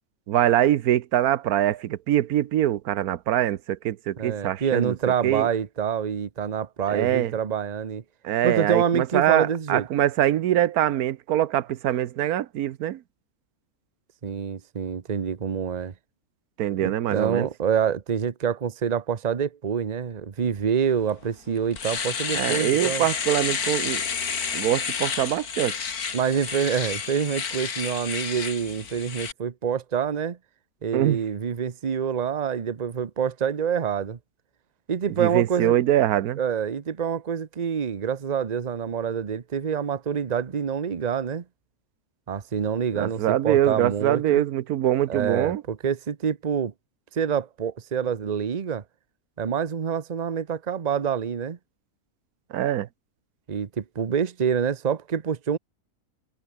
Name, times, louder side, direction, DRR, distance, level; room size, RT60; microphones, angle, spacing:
voice 1, 0.3-5.0 5.2-5.5 6.9-7.3 8.2-13.0 16.6-17.5 22.3-24.0 24.5-25.7 30.9-31.2 35.2-36.4 43.0-45.6 52.5-52.9, right 12 dB, 85° right, 1.2 m, -23 dB
voice 2, 4.2-8.0 8.4-9.9 14.2-15.9 16.8-23.1 26.1-30.4 30.8-34.2 34.9-35.8 36.4-41.4 42.3-44.4 45.1-46.7 47.1-48.8 49.4-51.6 53.5-55.6, right 7 dB, 35° right, 0.9 m, -26 dB
Domestic sounds home sounds, 21.1-21.2 21.6-29.3, left 6 dB, 90° left, 2.3 m, -30 dB
omnidirectional pair, 1.5 m